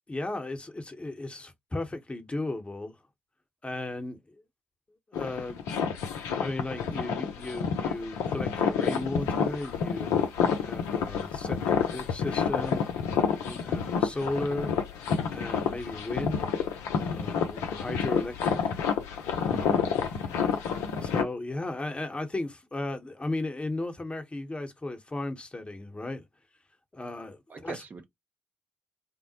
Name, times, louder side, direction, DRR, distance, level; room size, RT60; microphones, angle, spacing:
voice 1, 0.1-3.0 3.6-4.4 5.1-5.6 6.4-10.2 10.5-12.8 13.3-14.7 15.3-16.5 17.0-18.8 19.4-19.8 21.0-26.2 26.9-27.8, left 2 dB, 20° left, 0.9 m, -35 dB
sound 1, 5.1-21.2, left 6 dB, 70° left, 0.5 m, -29 dB
voice 2, 19.5-19.8 21.0-21.1 27.5-28.0, right 4 dB, 35° right, 0.6 m, -42 dB
3.7 x 2.0 x 2.8 m
hypercardioid pair, 40°, 5 cm